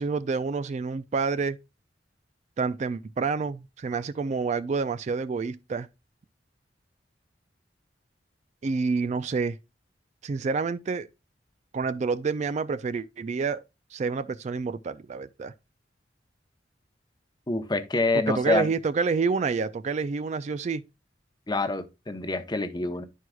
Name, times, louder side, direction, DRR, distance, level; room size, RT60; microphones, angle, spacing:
voice 1, 0.0-1.6 2.6-5.9 8.6-9.6 10.2-11.1 11.7-13.6 13.9-15.5 18.3-20.8, right 4 dB, 40° right, 0.3 m, -28 dB
voice 2, 17.5-18.7 21.5-23.0, left 2 dB, 25° left, 0.8 m, -26 dB
11.0 x 4.6 x 2.2 m
head